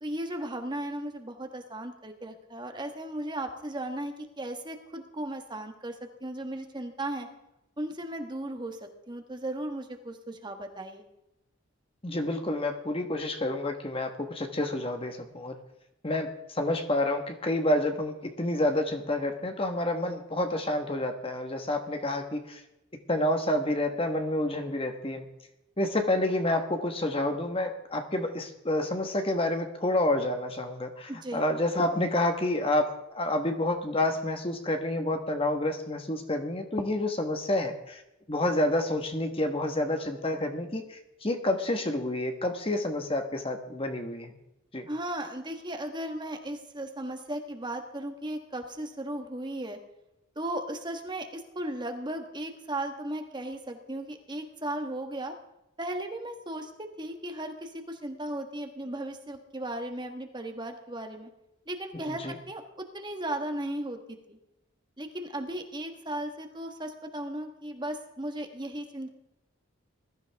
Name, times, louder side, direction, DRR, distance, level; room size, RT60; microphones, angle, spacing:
voice 1, 0.0-7.3 7.8-11.0 31.1-31.4 44.9-49.8 50.3-55.3 55.8-61.3 61.7-64.0 64.3-64.4 65.0-69.1, right 1 dB, 20° right, 5 dB, 1.4 m, -36 dB
voice 2, 12.0-15.5 16.0-22.6 23.1-25.3 25.8-38.0 38.3-44.3 44.7-44.9 61.9-62.3, left 1 dB, 25° left, 5 dB, 1.4 m, -29 dB
21.0 x 13.0 x 3.5 m, 0.87 s
head